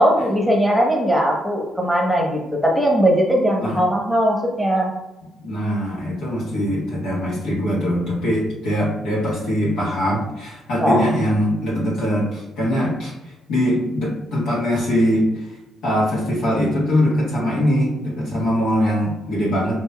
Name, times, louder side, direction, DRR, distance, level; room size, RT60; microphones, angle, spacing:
voice 1, 0.0-4.9 10.8-11.0, equal, ahead, -1 dB, 1.2 m, -19 dB
voice 2, 5.4-13.1 13.5-15.3 15.8-19.8, equal, 65° left, -5 dB, 1.4 m, -22 dB
7.2 x 2.9 x 2.3 m, 1.0 s
figure-of-eight pair, 45°, 0 cm